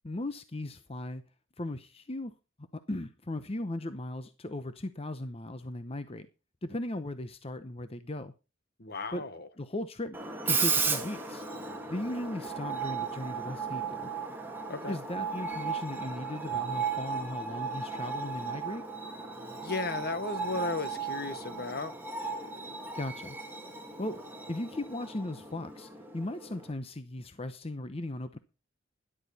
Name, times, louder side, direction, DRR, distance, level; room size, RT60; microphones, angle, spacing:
voice 1, 0.0-1.2 1.6-2.3 2.7-6.3 6.6-8.3 9.1-9.2 9.6-10.2 10.4-11.4 11.9-14.1 14.9-18.8 22.9-23.4 24.0-24.2 24.5-28.4, left 1 dB, 30° left, 0.8 m, -37 dB
voice 2, 8.8-9.5 14.7-15.0 19.6-21.9, left 3 dB, 50° left, 1.2 m, -35 dB
Screech, 10.1-26.7, right 5 dB, 10° right, 1.9 m, -35 dB
13.0 x 11.0 x 4.2 m
head